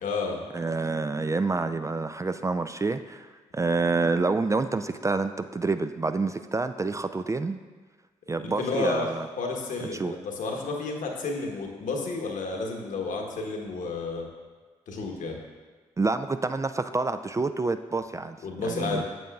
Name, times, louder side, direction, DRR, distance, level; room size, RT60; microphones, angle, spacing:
voice 1, 0.0-0.4 8.4-14.3 14.9-15.4 18.4-19.0, left 3 dB, 65° left, 1 dB, 1.2 m, -31 dB
voice 2, 0.5-3.3 3.5-7.6 8.3-9.3 9.9-10.1 16.0-19.0, right 3 dB, 20° right, 10 dB, 0.4 m, -28 dB
9.1 x 7.3 x 2.4 m, 1.4 s
hypercardioid pair, 40°, 15 cm